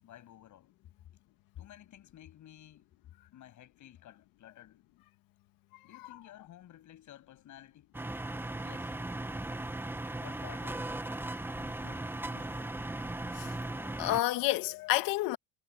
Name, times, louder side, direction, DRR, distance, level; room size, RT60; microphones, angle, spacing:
voice 1, 0.0-0.7 1.6-2.9 3.3-4.8 5.8-7.9 8.6-8.9 10.2-11.0 11.6-12.8, left 12 dB, 60° left, 7.8 m, -53 dB
sound 1, 7.9-14.2, right 2 dB, 5° right, 1.1 m, -37 dB
voice 2, 13.8-15.4, left 16 dB, 80° left, 2.0 m, -30 dB
cardioid pair, 105°, 34 cm